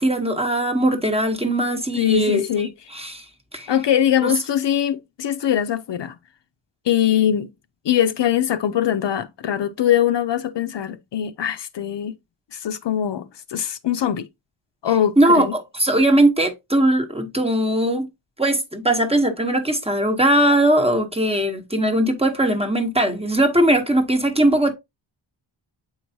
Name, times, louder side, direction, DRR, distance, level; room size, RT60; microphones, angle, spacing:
voice 1, 0.0-2.4 2.9-3.2 3.5-3.7 4.2-4.3 15.2-18.1 18.4-24.7, right 1 dB, 10° right, 0.9 m, -19 dB
voice 2, 1.9-2.7 3.7-6.1 6.9-7.5 7.8-12.1 12.5-14.3 14.8-15.5, left 10 dB, 60° left, 0.6 m, -22 dB
7.9 x 4.6 x 2.7 m
wide cardioid pair, 175°, 48 cm